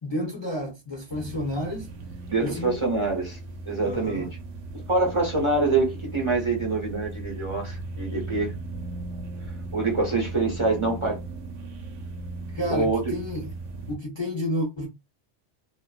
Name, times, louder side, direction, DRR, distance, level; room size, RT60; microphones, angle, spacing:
voice 1, 0.0-1.9 2.4-2.9 3.8-4.3 12.5-13.6 13.9-14.9, left 1 dB, 30° left, 0.5 m, -31 dB
sound 1, 1.1-14.0, right 2 dB, 90° right, 1.0 m, -37 dB
voice 2, 2.3-3.4 3.7-4.3 4.9-8.5 9.7-11.2 12.6-13.1, right 3 dB, 30° right, 0.6 m, -25 dB
2.4 x 2.3 x 2.3 m
omnidirectional pair, 1.3 m